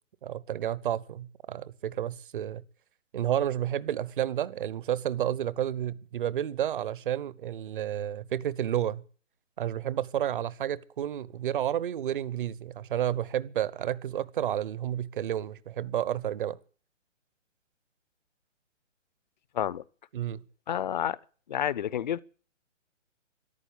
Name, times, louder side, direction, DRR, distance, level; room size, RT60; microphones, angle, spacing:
voice 1, 0.2-2.6 3.1-9.0 9.6-16.6 20.1-20.4, right 11 dB, 40° right, 1.0 m, -31 dB
voice 2, 20.7-21.2 21.5-22.2, left 10 dB, 35° left, 0.7 m, -29 dB
14.0 x 11.5 x 8.7 m
figure-of-eight pair, 140°, 38 cm